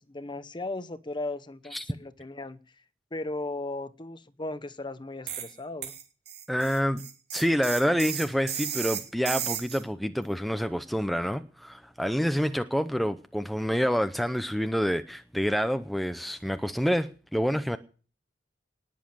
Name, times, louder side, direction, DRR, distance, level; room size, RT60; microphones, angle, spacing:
voice 1, 0.0-2.6 3.1-5.9, left 2 dB, 25° left, 0.9 m, -36 dB
sound 1, 5.3-5.5 5.8-9.8, right 9 dB, 60° right, 2.9 m, -34 dB
voice 2, 6.5-7.1 7.3-17.8, equal, ahead, 0.6 m, -27 dB
19.0 x 7.4 x 7.7 m
head